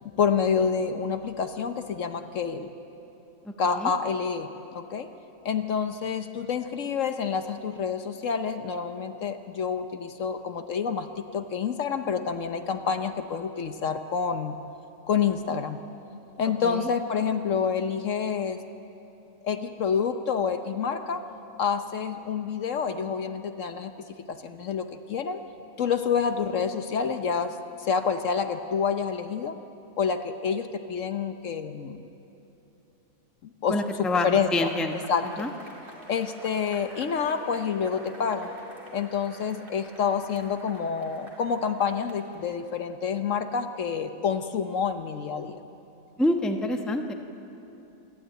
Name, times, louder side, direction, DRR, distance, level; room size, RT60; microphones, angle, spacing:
voice 1, 0.0-2.7 3.6-5.1 5.4-14.6 15.1-15.8 16.4-18.6 19.4-21.2 21.6-25.4 25.8-29.6 30.0-32.0 33.6-34.7 35.1-35.5 36.1-38.5 38.9-45.6, left 6 dB, 60° left, 8 dB, 1.1 m, -28 dB
voice 2, 3.4-3.9 16.6-16.9 33.7-35.0 35.4-35.5 46.2-47.1, left 1 dB, ahead, 4 dB, 0.8 m, -27 dB
Cheering / Applause / Crowd, 34.4-43.1, equal, 35° right, 3.0 m, -47 dB
27.0 x 12.0 x 8.9 m, 2.9 s
omnidirectional pair, 1.6 m